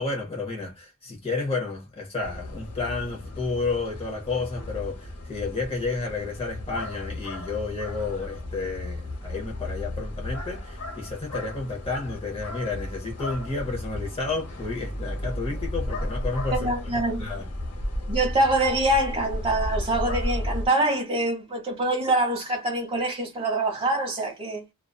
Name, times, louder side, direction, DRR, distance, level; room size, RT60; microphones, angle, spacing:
voice 1, 0.0-17.5, left 3 dB, 25° left, 0.7 m, -31 dB
sound 1, 2.2-20.7, left 1 dB, 90° left, 1.0 m, -34 dB
voice 2, 16.5-17.3 18.1-24.6, right 1 dB, 25° right, 1.0 m, -25 dB
2.5 x 2.3 x 2.2 m
head